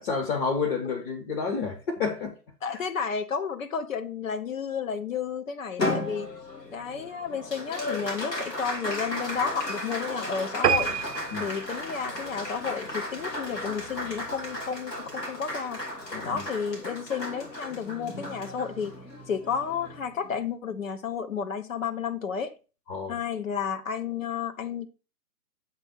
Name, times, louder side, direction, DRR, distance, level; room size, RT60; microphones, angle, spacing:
voice 1, 0.0-2.4 2.7-2.8 11.3-11.5 16.1-16.5 22.9-23.1, left 5 dB, 35° left, 1.3 m, -30 dB
voice 2, 2.6-6.3 6.7-11.0 11.4-15.8 16.2-18.9 19.3-22.5 23.1-24.9, left 6 dB, 55° left, 1.1 m, -32 dB
Applause, 5.8-20.4, left 1 dB, 85° left, 3.2 m, -35 dB
sound 1, 10.6-13.4 13.9-14.1 14.5-14.6 14.9-15.0 15.2-15.3, right 8 dB, 80° right, 0.6 m, -29 dB
8.1 x 3.6 x 5.3 m
figure-of-eight pair, 135°, 48 cm